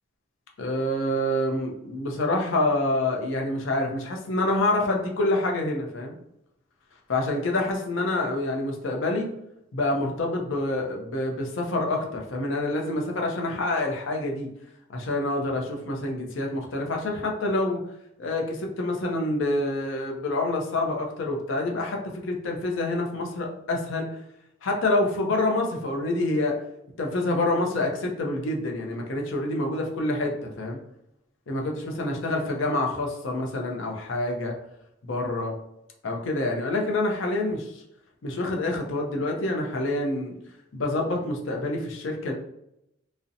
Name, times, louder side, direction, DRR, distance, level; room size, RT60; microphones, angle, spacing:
voice 1, 0.6-6.2 7.1-9.3 9.7-14.5 14.9-17.8 18.2-24.1 24.6-26.6 27.0-30.8 31.5-34.6 35.0-35.6 36.0-37.8 38.2-40.4 40.7-42.3, left 2 dB, 75° left, 1 dB, 0.5 m, -27 dB
2.5 x 2.0 x 2.6 m, 0.80 s
head